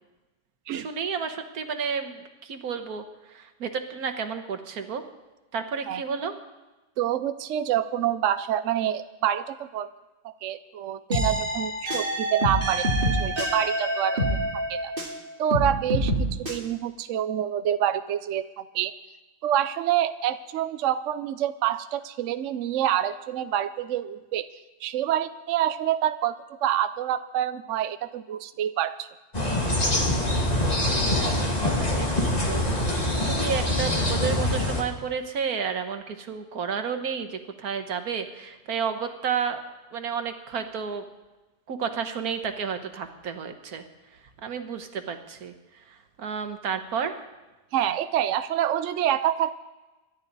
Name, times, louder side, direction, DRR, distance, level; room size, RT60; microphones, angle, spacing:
voice 1, 0.7-5.0 5.5-6.4 31.1-39.6 39.9-41.0 41.7-43.9 44.1-47.2, right 6 dB, 90° right, 7 dB, 1.7 m, -32 dB
voice 2, 7.0-9.9 10.2-14.3 14.7-14.9 15.4-18.9 19.4-24.5 24.8-26.3 26.6-29.0 47.7-49.5, right 11 dB, 65° right, 11 dB, 0.9 m, -27 dB
sound 1, 11.1-15.2 15.5-16.6, right 1 dB, 35° right, 2.6 m, -26 dB
sound 2, 29.3-34.8, left 1 dB, 25° left, 2.2 m, -24 dB
26.0 x 11.5 x 4.0 m, 1.1 s
omnidirectional pair, 1.5 m